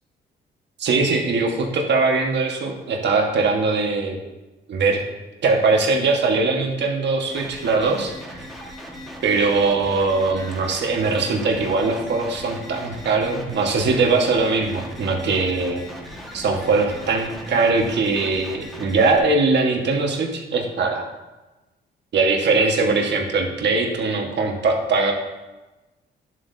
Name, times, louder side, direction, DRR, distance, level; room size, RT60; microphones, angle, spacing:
voice 1, 0.8-4.2 4.7-5.0 5.4-8.4 9.2-15.8 16.3-21.1 22.1-25.1, right 3 dB, 60° right, 1 dB, 1.5 m, -21 dB
sound 1, 7.3-19.2, equal, ahead, 1.6 m, -38 dB
10.5 x 7.8 x 2.7 m, 1.1 s
cardioid pair, 90°, 20 cm